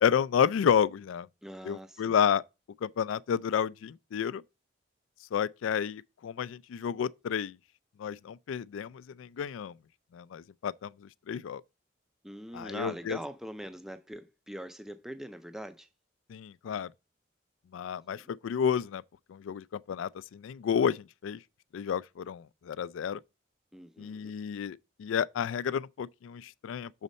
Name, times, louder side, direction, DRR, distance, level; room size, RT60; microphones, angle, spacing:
voice 1, 0.0-1.3 1.6-2.4 2.8-4.4 5.3-7.6 8.0-9.7 10.1-11.6 12.5-13.2 16.3-16.9 17.7-19.0 19.3-21.4 21.7-23.2 24.0-26.9, left 8 dB, 80° left, 0.3 m, -31 dB
voice 2, 1.4-2.2 12.2-15.9 17.9-18.3 23.7-24.3, equal, ahead, 0.4 m, -43 dB
6.3 x 4.1 x 5.2 m
head